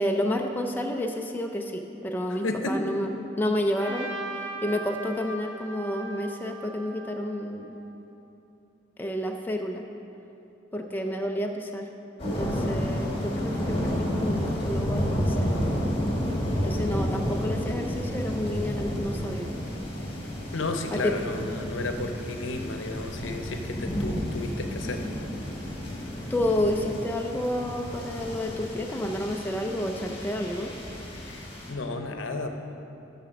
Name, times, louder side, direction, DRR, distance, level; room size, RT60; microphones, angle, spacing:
voice 1, 0.0-3.1 3.4-7.8 9.0-9.8 10.7-11.9 12.4-15.5 16.6-19.5 20.9-21.1 26.3-30.7, left 1 dB, 10° left, 2 dB, 0.4 m, -30 dB
voice 2, 2.3-2.9 20.5-25.0 31.2-32.5, left 2 dB, 85° left, 5 dB, 0.7 m, -33 dB
Trumpet, 3.8-7.9, right 2 dB, 60° right, 1.3 m, -39 dB
sound 1, 12.2-31.7, equal, 30° left, 1.5 m, -31 dB
7.3 x 5.8 x 5.8 m, 2.8 s
head